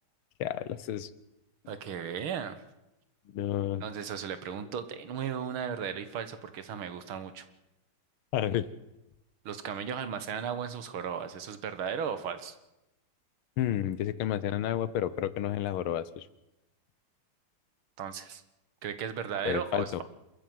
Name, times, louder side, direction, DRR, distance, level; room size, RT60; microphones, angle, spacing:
voice 1, 0.4-1.1 3.3-3.8 8.3-8.7 13.6-16.3 19.5-19.8, left 11 dB, 85° left, 16 dB, 1.7 m, -30 dB
voice 2, 1.7-2.6 3.8-7.5 9.5-12.6 18.0-18.4 18.8-20.0, right 7 dB, 80° right, 11 dB, 2.1 m, -35 dB
27.0 x 14.0 x 7.8 m, 0.96 s
omnidirectional pair, 2.2 m